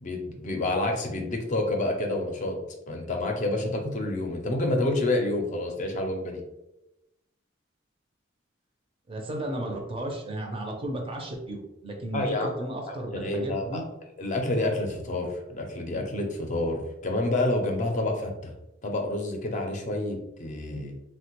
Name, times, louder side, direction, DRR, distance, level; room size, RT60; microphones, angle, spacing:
voice 1, 0.0-2.6 2.9-6.4 12.1-12.5 12.9-13.8 14.2-18.5 18.8-20.9, left 2 dB, 40° left, 2 dB, 0.5 m, -28 dB
voice 2, 9.1-13.9, right 1 dB, 30° right, 2 dB, 0.4 m, -34 dB
3.3 x 2.1 x 2.9 m, 0.90 s
head